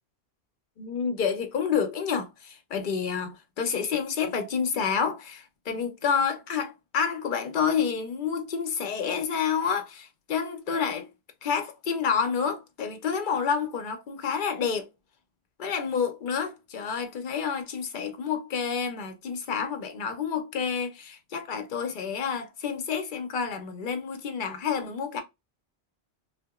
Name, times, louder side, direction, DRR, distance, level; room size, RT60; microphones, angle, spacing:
voice 1, 0.8-11.1 11.4-14.9 15.6-25.2, left 6 dB, 55° left, 0.7 m, -29 dB
2.7 x 2.3 x 2.3 m
omnidirectional pair, 1.1 m